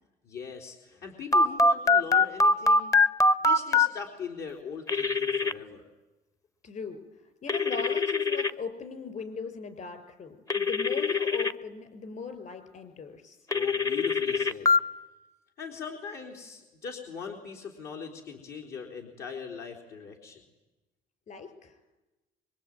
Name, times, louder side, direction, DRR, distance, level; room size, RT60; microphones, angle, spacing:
voice 1, 0.2-3.0 3.4-5.9 13.5-14.7 15.6-20.4, left 6 dB, 70° left, 1 dB, 4.1 m, -40 dB
Telephone, 1.3-3.9 4.9-5.5 7.5-8.5 10.5-11.5 13.5-14.8, left 3 dB, 20° left, 0.9 m, -23 dB
voice 2, 6.6-13.4 21.3-21.8, left 5 dB, 50° left, 9 dB, 5.4 m, -39 dB
25.0 x 23.5 x 9.2 m, 1.1 s
cardioid pair, 110°, 17 cm